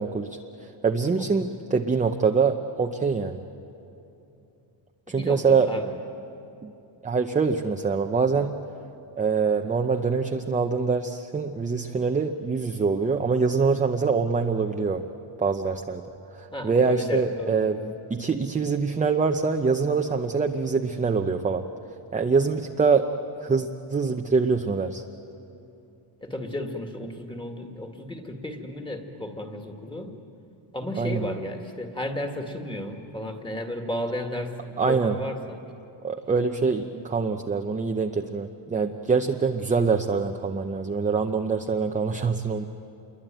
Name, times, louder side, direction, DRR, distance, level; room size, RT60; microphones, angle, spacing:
voice 1, 0.0-3.4 5.1-5.7 6.6-6.7 7.0-8.5 9.2-15.1 15.4-16.0 16.3-21.7 22.1-23.1 23.4-25.0 31.0-31.2 34.8-35.2 36.0-42.7, right 5 dB, 15° right, 4 dB, 0.7 m, -24 dB
voice 2, 5.1-5.9 16.5-17.6 26.2-30.2 30.7-35.6, left 1 dB, 10° left, 4 dB, 2.1 m, -33 dB
27.5 x 22.5 x 9.1 m, 2.8 s
cardioid pair, 150°, 47 cm